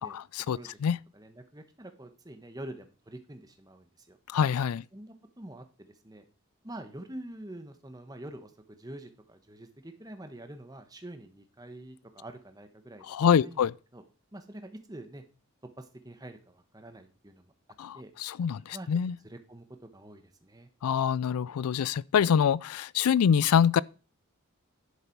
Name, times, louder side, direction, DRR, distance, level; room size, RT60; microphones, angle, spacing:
voice 1, 0.0-1.0 4.3-4.8 13.1-13.7 17.8-19.1 20.8-23.8, left 7 dB, 90° left, 0.4 m, -25 dB
voice 2, 1.1-4.2 4.9-6.2 6.6-13.0 13.3-13.6 13.9-14.0 14.3-15.2 15.8-17.5 17.9-18.1 18.7-18.9 19.2-20.7, right 1 dB, 15° right, 1.1 m, -46 dB
11.5 x 6.7 x 4.6 m
head